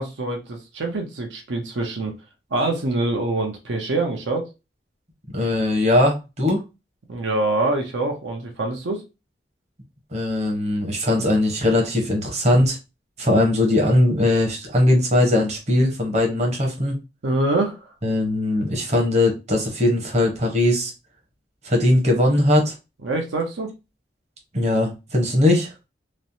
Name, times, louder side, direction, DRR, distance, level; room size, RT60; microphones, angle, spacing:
voice 1, 0.0-2.1 2.5-4.5 7.1-9.0 17.2-17.9 23.0-23.7, right 2 dB, 85° right, 0.6 m, -25 dB
voice 2, 5.3-6.6 10.1-12.8 13.2-17.0 18.0-20.9 21.6-22.7 24.5-25.7, left 1 dB, 40° right, 0.9 m, -20 dB
3.1 x 2.0 x 2.6 m
head